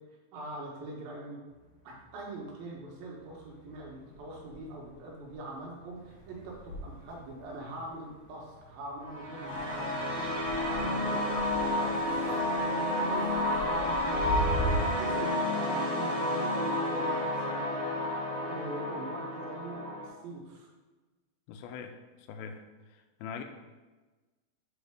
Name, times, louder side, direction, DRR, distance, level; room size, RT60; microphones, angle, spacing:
voice 1, 0.3-1.4 1.8-14.4 15.0-17.8 18.4-20.7, right 2 dB, 80° right, -2 dB, 3.0 m, -43 dB
sound 1, 1.5-2.7 3.1-14.8, right 1 dB, 75° left, 1.2 m, -41 dB
sound 2, 9.0-20.1, left 1 dB, 20° left, 0.3 m, -31 dB
voice 2, 21.5-22.6 22.9-23.4, left 6 dB, 90° left, 6 dB, 2.4 m, -42 dB
7.2 x 4.2 x 3.5 m, 1.2 s
omnidirectional pair, 4.2 m